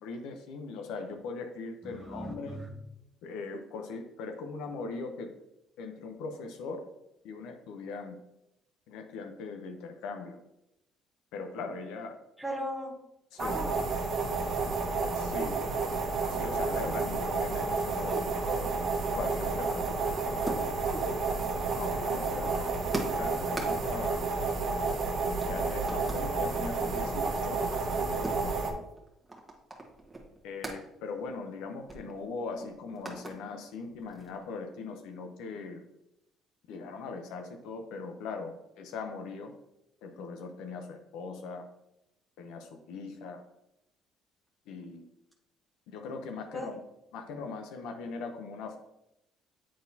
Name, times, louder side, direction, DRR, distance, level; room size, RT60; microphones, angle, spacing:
voice 1, 0.0-2.6 3.2-5.3 5.8-6.9 7.2-8.2 8.9-10.4 11.3-12.2 13.3-13.6 15.1-15.6 16.3-18.2 18.5-18.7 19.2-20.6 21.8-22.6 23.1-24.2 25.2-27.9 28.4-28.8 30.4-35.8 36.7-39.5 40.0-41.6 42.4-43.4 44.7-45.0 45.9-46.8 47.1-48.8, left 4 dB, 85° left, 6 dB, 0.7 m, -40 dB
voice 2, 1.8-2.7 12.4-12.9 13.4-13.7 18.1-18.2 18.5-18.6 20.9-21.2 22.3-23.0 46.5-46.7, equal, 5° left, -2 dB, 1.0 m, -38 dB
sound 1, 13.4-28.7, right 3 dB, 55° right, 1.1 m, -31 dB
sound 2, 20.0-20.9 21.2-25.1 25.4-26.3 26.7-30.8 31.2-31.3 31.6-33.4 33.8-34.6, right 2 dB, 15° right, 1.3 m, -43 dB
8.5 x 4.1 x 2.7 m, 0.86 s
cardioid pair, 110°, 0 cm